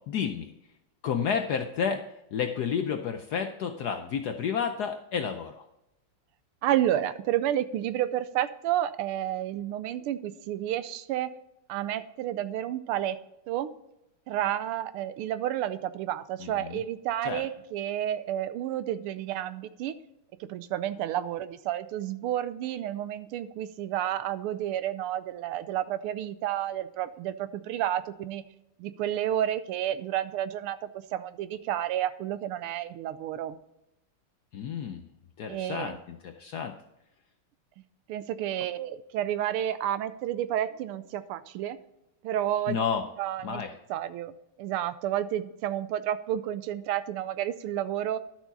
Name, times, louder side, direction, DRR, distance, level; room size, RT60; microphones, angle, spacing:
voice 1, 0.1-0.5 1.0-2.0 2.3-5.6 16.4-16.8 17.2-17.4 34.5-35.1 35.4-36.7 42.7-43.1 43.4-43.7, left 7 dB, 80° left, 6 dB, 0.9 m, -31 dB
voice 2, 6.6-11.3 11.7-13.2 13.5-13.7 14.3-20.0 20.4-28.4 28.8-30.8 31.1-33.6 35.5-35.9 38.1-41.8 42.2-42.8 43.2-43.6 43.9-44.3 44.6-48.2, right 11 dB, 85° right, 14 dB, 1.5 m, -30 dB
11.5 x 6.3 x 4.0 m, 0.87 s
omnidirectional pair, 2.4 m